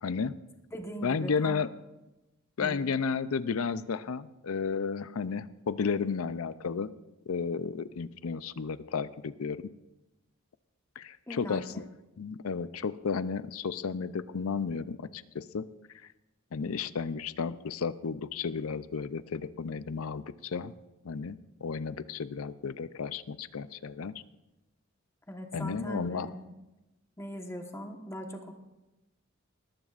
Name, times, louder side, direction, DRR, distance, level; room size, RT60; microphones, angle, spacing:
voice 1, 0.0-0.3 1.0-1.7 2.6-6.9 7.3-9.7 11.0-11.9 12.2-15.6 16.5-20.7 21.0-24.2 25.5-26.4, left 5 dB, 75° left, 15 dB, 0.5 m, -33 dB
voice 2, 0.7-1.6 2.6-2.8 11.3-11.6 25.3-26.4 27.2-28.5, equal, 15° left, 3 dB, 1.3 m, -40 dB
19.5 x 13.5 x 2.5 m, 1.0 s
head